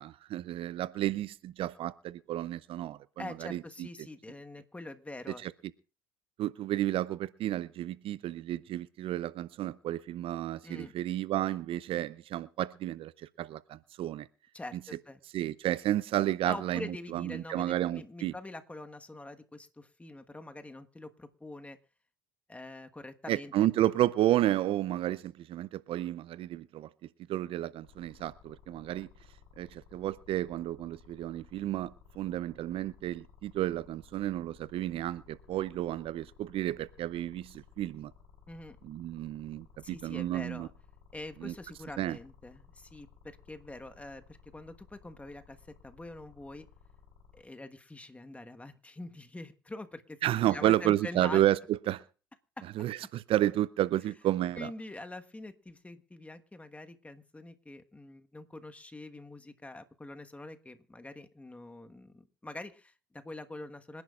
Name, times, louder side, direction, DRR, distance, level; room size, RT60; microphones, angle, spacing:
voice 1, 0.0-3.9 5.4-5.5 6.4-14.3 15.3-18.3 23.3-26.9 27.3-29.1 29.6-38.1 38.8-40.7 41.4-41.5 42.0-42.2 50.2-52.0 52.8-54.7, right 13 dB, 50° right, 0.5 m, -31 dB
voice 2, 3.2-5.4 10.6-10.9 14.5-15.2 16.5-21.8 22.5-23.5 38.5-38.8 39.8-40.7 41.1-46.7 47.3-51.4 52.6-52.7 54.5-64.0, left 2 dB, 10° left, 1.3 m, -45 dB
sound 1, 27.8-47.4, left 6 dB, 60° left, 4.4 m, -58 dB
26.5 x 10.5 x 2.4 m
hypercardioid pair, 70°, 12 cm